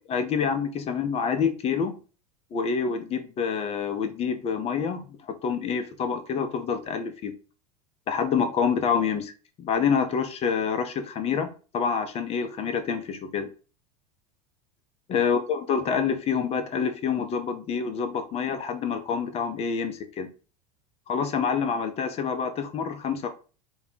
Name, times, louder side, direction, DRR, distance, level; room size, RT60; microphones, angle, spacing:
voice 1, 0.1-2.0 2.5-7.3 8.1-9.3 9.6-11.5 11.7-13.5 15.1-20.3 21.1-23.3, left 6 dB, 30° left, 8 dB, 0.5 m, -27 dB
2.2 x 2.1 x 3.6 m, 0.35 s
hypercardioid pair, 90°, 20 cm